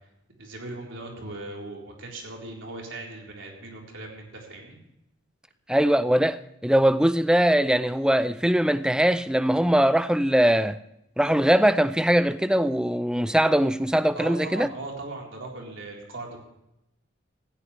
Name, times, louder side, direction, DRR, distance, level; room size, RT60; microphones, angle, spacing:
voice 1, 0.4-4.8 14.1-16.5, right 2 dB, 70° right, 4.0 m, -38 dB
voice 2, 5.7-10.8 11.2-14.7, right 1 dB, 5° right, 0.4 m, -21 dB
16.0 x 15.0 x 3.3 m
head